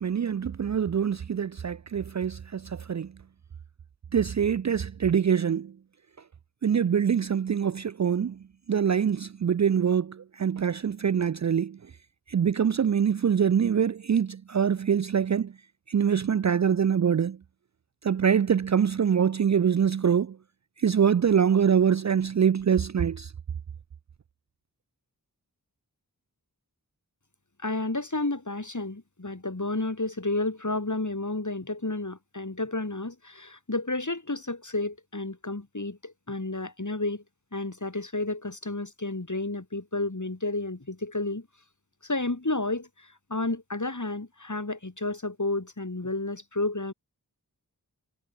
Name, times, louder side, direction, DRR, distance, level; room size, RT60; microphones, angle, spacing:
voice 1, 0.0-3.1 4.1-5.7 6.6-8.4 8.7-11.8 12.3-15.5 15.9-17.4 18.0-20.4 20.8-23.3, right 7 dB, 50° right, 0.4 m, -24 dB
voice 2, 27.6-37.2 37.5-41.5 42.0-46.9, left 2 dB, 50° left, 4.6 m, -31 dB
wide cardioid pair, 45°, 38 cm